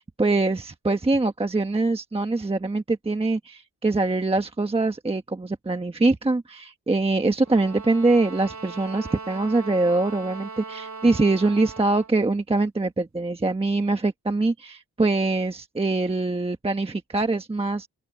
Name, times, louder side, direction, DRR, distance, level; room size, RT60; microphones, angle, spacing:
voice 1, 0.0-17.9, right 2 dB, 15° right, 1.2 m, -23 dB
sound 1, 7.4-12.2, right 4 dB, 45° right, 3.7 m, -39 dB
open air
wide cardioid pair, 155°, 39 cm